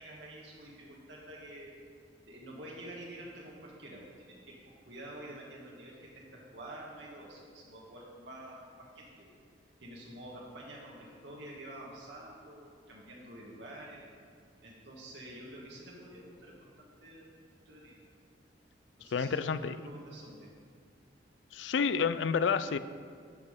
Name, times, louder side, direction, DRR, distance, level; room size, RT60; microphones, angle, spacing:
voice 1, 0.0-1.8 2.2-9.3 9.8-14.1 14.6-17.3 17.6-18.0 19.0-20.5, right 1 dB, 80° right, -3 dB, 1.6 m, -48 dB
voice 2, 19.1-19.8 21.5-22.8, left 6 dB, 80° left, 13 dB, 0.4 m, -29 dB
12.0 x 5.4 x 5.2 m, 2.1 s
head